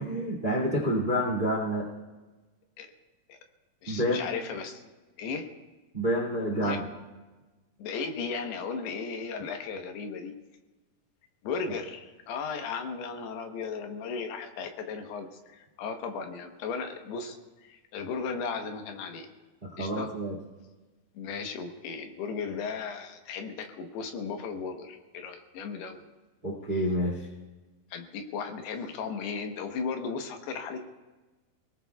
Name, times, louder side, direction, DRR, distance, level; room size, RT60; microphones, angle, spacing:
voice 1, 0.0-1.9 3.9-4.3 5.9-6.9 19.6-20.4 26.4-27.3, equal, 20° right, -1 dB, 1.4 m, -28 dB
voice 2, 3.8-4.8 5.2-5.5 6.5-6.8 7.8-10.3 11.4-19.3 19.8-20.1 21.1-26.0 26.7-26.8 27.9-30.8, left 5 dB, 80° left, 5 dB, 3.1 m, -36 dB
28.5 x 18.5 x 2.3 m, 1.2 s
omnidirectional pair, 4.6 m